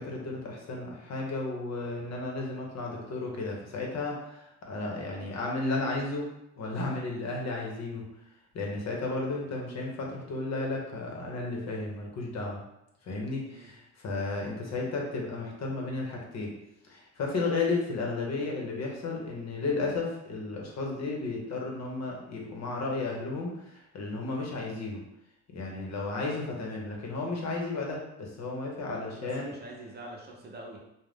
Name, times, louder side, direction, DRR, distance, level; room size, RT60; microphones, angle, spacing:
voice 1, 0.0-6.3 6.6-8.0 8.5-12.6 13.0-16.5 16.9-25.0 25.5-29.5, left 3 dB, 60° left, -1 dB, 0.8 m, -33 dB
voice 2, 28.9-30.8, right 1 dB, 35° right, -1 dB, 0.7 m, -45 dB
2.5 x 2.1 x 3.4 m, 0.84 s
cardioid pair, 90°, 30 cm